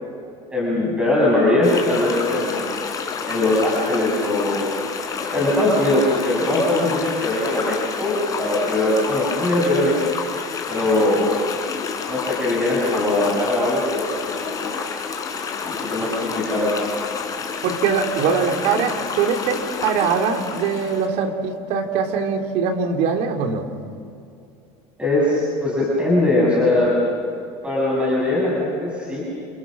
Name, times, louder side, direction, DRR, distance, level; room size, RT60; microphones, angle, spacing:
voice 1, 0.5-2.6 3.3-4.8 5.2-10.0 10.7-11.3 12.1-14.8 15.7-16.7 25.0-26.9 27.6-29.2, left 2 dB, 10° right, -5 dB, 6.6 m, -21 dB
sound 1, 1.6-21.1, left 6 dB, 25° left, 4.1 m, -29 dB
voice 2, 17.6-23.7, right 6 dB, 65° right, 3 dB, 3.5 m, -22 dB
29.5 x 29.0 x 6.4 m, 2.5 s
cardioid pair, 145°, 13 cm